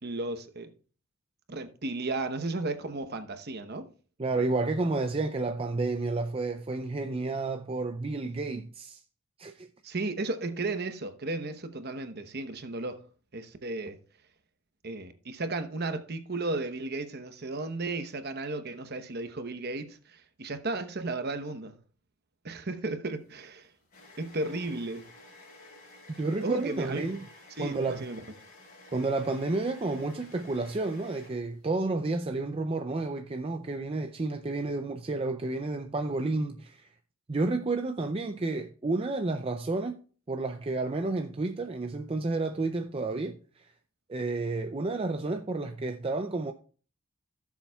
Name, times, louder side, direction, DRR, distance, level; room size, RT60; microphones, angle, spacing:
voice 1, 0.0-0.7 1.5-3.9 9.8-13.0 13.3-14.0 14.8-21.8 22.4-23.7 24.2-25.1 26.4-27.0 27.6-28.2, right 2 dB, 45° right, 0.9 m, -34 dB
voice 2, 4.2-9.0 9.4-9.7 26.2-27.2 27.6-28.1 28.9-36.9 37.3-40.0 40.3-43.7 44.1-46.5, right 3 dB, 25° right, 0.4 m, -31 dB
sound 1, 23.1-31.8, left 2 dB, 40° left, 4.2 m, -53 dB
17.0 x 7.2 x 2.3 m
head